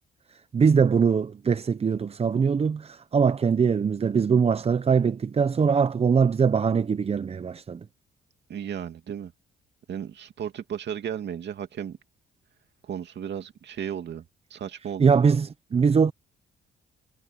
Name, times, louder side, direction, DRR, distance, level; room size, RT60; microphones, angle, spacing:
voice 1, 0.5-7.8 15.0-16.1, right 6 dB, 30° right, 0.6 m, -22 dB
voice 2, 8.5-9.3 9.9-12.0 12.9-14.2 14.5-15.2, right 9 dB, 60° right, 2.5 m, -34 dB
cardioid pair, 90°, 20 cm